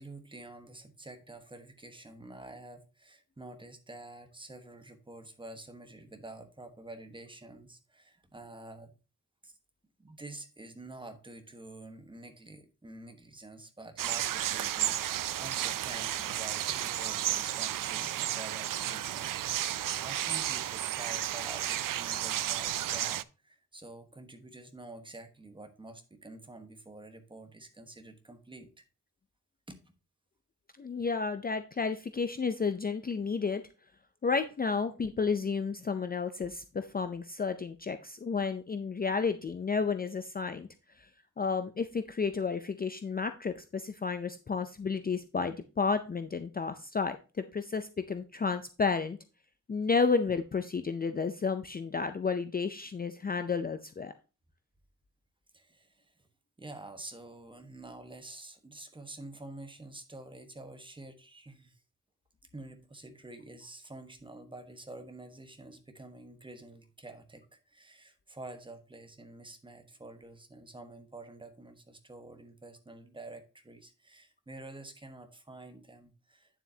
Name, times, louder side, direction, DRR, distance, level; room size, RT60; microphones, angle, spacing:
voice 1, 0.0-8.9 9.4-9.5 10.0-28.8 29.7-29.9 55.5-56.2 56.6-61.8 62.5-76.6, right 2 dB, 15° right, 6 dB, 1.2 m, -48 dB
sound 1, 14.0-23.2, right 12 dB, 85° right, 0.5 m, -33 dB
voice 2, 30.8-33.6 34.2-40.7 41.0-41.1 41.4-47.2 47.5-49.2 49.7-54.1, left 5 dB, 30° left, 10 dB, 0.5 m, -31 dB
9.2 x 7.3 x 2.8 m, 0.32 s
wide cardioid pair, 175°, 32 cm